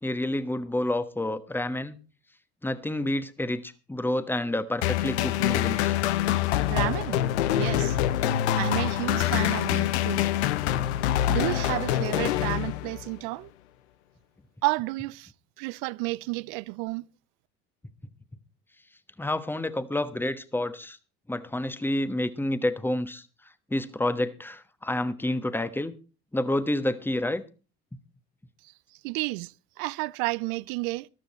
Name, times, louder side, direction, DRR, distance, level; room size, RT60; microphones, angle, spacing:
voice 1, 0.0-2.0 2.6-5.9 19.2-21.0 21.3-23.3 23.7-26.0 26.3-27.4, left 1 dB, 5° left, 1.2 m, -29 dB
sound 1, 4.8-13.1, left 12 dB, 85° left, 0.8 m, -25 dB
voice 2, 6.7-7.2 7.5-8.0 8.5-10.2 11.3-13.5 14.6-15.3 15.6-17.1 28.6-28.7 29.0-31.1, right 24 dB, 70° right, 0.5 m, -31 dB
14.0 x 12.5 x 4.3 m
hypercardioid pair, 75°, 32 cm